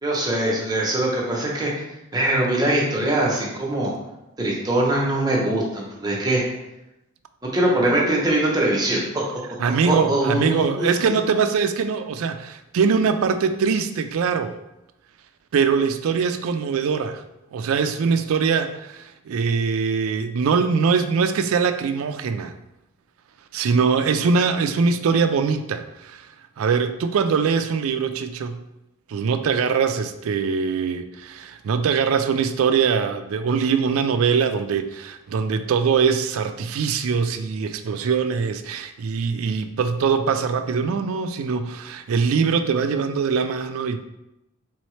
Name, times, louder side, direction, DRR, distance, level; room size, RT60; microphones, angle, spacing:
voice 1, 0.0-1.7 2.1-3.9 4.4-6.4 7.5-9.0 9.9-11.2, right 1 dB, 20° right, -3 dB, 0.8 m, -22 dB
voice 2, 9.6-14.6 15.5-17.2 17.5-22.5 23.5-26.3 26.6-28.6 29.1-44.0, right 5 dB, 80° right, 9 dB, 0.4 m, -22 dB
4.1 x 3.8 x 3.1 m, 0.91 s
head